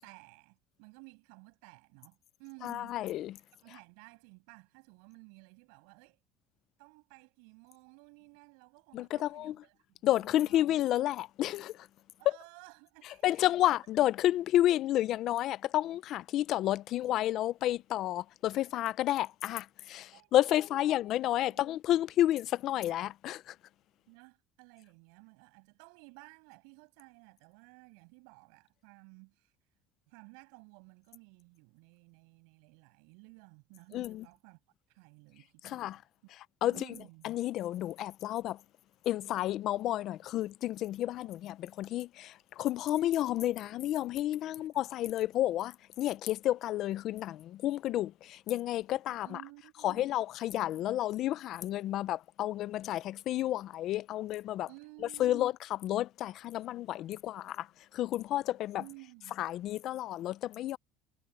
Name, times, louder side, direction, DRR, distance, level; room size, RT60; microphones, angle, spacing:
voice 1, 0.0-3.0 3.6-6.2 6.8-10.7 12.2-13.7 18.4-18.8 20.1-21.7 24.1-29.5 30.1-34.6 34.9-36.0 36.7-37.3 44.6-44.8 49.2-50.1 54.7-55.5 58.8-59.4, right 34 dB, 90° right, 7.7 m, -55 dB
voice 2, 2.6-3.3 8.9-9.5 10.0-11.7 13.2-20.1 20.3-23.4 33.9-34.2 35.7-36.0 36.6-36.7 37.2-38.6 39.1-42.3 42.6-45.7 46.0-48.1 48.5-49.3 49.8-54.7 55.2-55.5 55.8-57.6 57.9-58.8 59.4-60.8, left 13 dB, 45° left, 0.4 m, -30 dB
cardioid pair, 160°, 0 cm